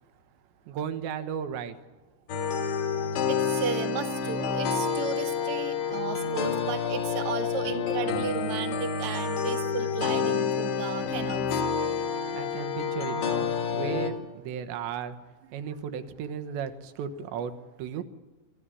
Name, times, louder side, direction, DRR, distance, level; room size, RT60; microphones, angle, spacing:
voice 1, 0.7-1.8 12.3-15.2 15.5-17.5 17.8-18.0, right 7 dB, 85° right, 9 dB, 3.5 m, -35 dB
sound 1, 2.3-14.1, left 6 dB, 75° left, 4.2 m, -29 dB
voice 2, 3.0-11.7, right 6 dB, 60° right, 5 dB, 1.5 m, -34 dB
25.5 x 14.0 x 9.8 m, 1.2 s
omnidirectional pair, 5.0 m